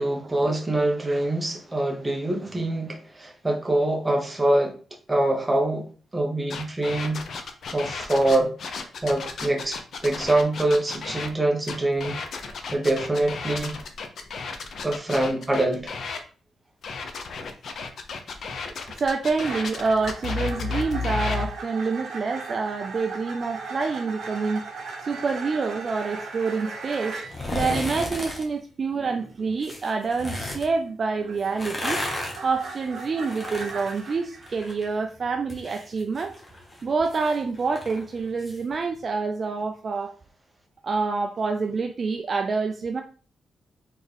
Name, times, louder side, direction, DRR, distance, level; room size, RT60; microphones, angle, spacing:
voice 1, 0.0-4.7 5.1-5.9 6.1-7.2 7.7-8.5 9.0-12.2 12.7-13.8 14.8-16.0, right 1 dB, 10° right, 0.9 m, -24 dB
sound 1, 6.5-11.3 11.6-16.2 16.8-21.5, left 5 dB, 55° left, 0.7 m, -33 dB
voice 2, 18.7-24.7 25.1-27.2 27.5-32.0 32.4-36.3 36.8-40.1 40.8-43.0, right 4 dB, 35° right, 0.3 m, -27 dB
sound 2, 19.4-27.4 30.7-34.5, right 4 dB, 70° right, 1.5 m, -38 dB
sound 3, 27.2-28.4 29.6-30.7 31.4-34.9 35.2-38.6 38.9-39.0, left 1 dB, 20° left, 1.1 m, -34 dB
4.2 x 3.6 x 3.3 m
wide cardioid pair, 145°, 0 cm